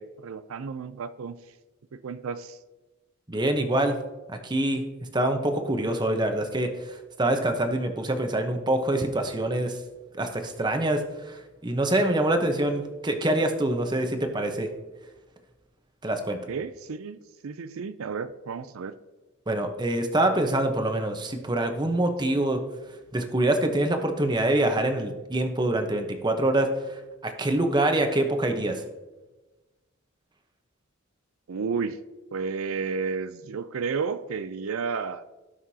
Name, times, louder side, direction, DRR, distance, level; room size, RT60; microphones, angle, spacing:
voice 1, 0.0-1.4 1.9-2.6 16.3-18.9 31.5-32.0 32.3-35.2, right 5 dB, 80° right, 12 dB, 0.5 m, -32 dB
voice 2, 3.3-4.0 4.3-4.8 5.1-9.8 10.1-14.7 16.0-16.4 19.5-22.6 23.1-28.8, right 1 dB, 20° right, 5 dB, 0.9 m, -25 dB
17.5 x 5.9 x 2.8 m, 1.2 s
head